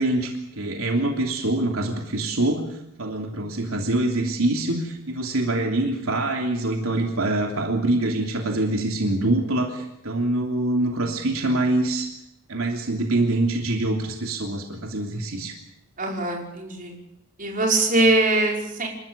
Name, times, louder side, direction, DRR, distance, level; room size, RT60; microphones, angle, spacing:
voice 1, 0.0-2.7 3.0-12.1 12.5-15.5, right 2 dB, 80° right, 2 dB, 3.2 m, -24 dB
voice 2, 16.0-16.9 17.4-18.9, right 2 dB, 40° right, 0 dB, 5.3 m, -22 dB
28.5 x 14.0 x 8.8 m, 0.86 s
head